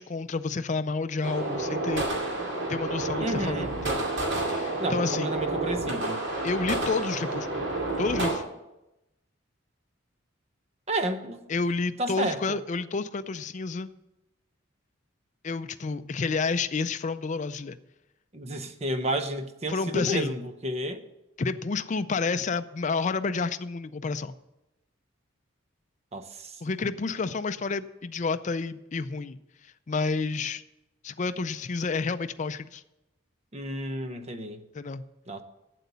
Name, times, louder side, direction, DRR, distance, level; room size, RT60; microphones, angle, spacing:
voice 1, 0.0-2.1 2.7-4.1 4.4-5.3 6.4-7.6 8.0-8.4 11.5-13.9 15.4-17.8 19.7-20.4 21.4-24.3 26.6-29.4 29.9-30.6 31.0-32.8 34.7-35.0, left 4 dB, 35° left, 0.4 m, -30 dB
sound 1, 1.2-8.3, right 2 dB, 60° right, 2.4 m, -30 dB
voice 2, 3.2-3.7 4.8-6.2 10.9-11.4 12.0-12.6 18.3-21.0 26.1-26.6 33.5-34.6 35.3-35.4, right 1 dB, 30° right, 0.7 m, -31 dB
8.4 x 8.0 x 6.8 m
head